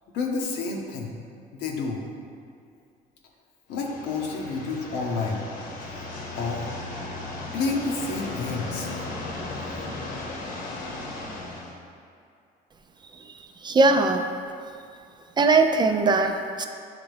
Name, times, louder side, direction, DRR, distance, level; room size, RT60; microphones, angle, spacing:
voice 1, 0.1-1.1 1.6-2.0 3.7-5.4 6.3-6.6 7.5-8.9, left 4 dB, 85° left, 0 dB, 0.9 m, -29 dB
sound 1, 3.7-11.8, left 2 dB, 60° left, 1.0 m, -36 dB
voice 2, 13.1-14.3 15.4-16.7, right 3 dB, 25° right, 6 dB, 0.4 m, -21 dB
9.0 x 3.4 x 3.5 m, 2.4 s
cardioid pair, 110°, 17 cm